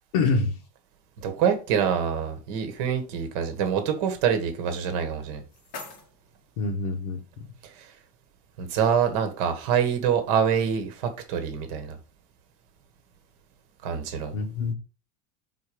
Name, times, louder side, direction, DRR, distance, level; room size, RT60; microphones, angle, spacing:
voice 1, 0.1-0.6 6.6-7.2 14.3-14.7, left 4 dB, 65° left, 1.1 m, -25 dB
voice 2, 1.2-5.4 7.7-7.9 8.6-12.0 13.8-14.4, right 7 dB, 60° right, 1.4 m, -25 dB
sound 1, 5.0-7.0, left 3 dB, 45° left, 1.8 m, -45 dB
4.7 x 4.1 x 5.0 m
supercardioid pair, 165°, 21 cm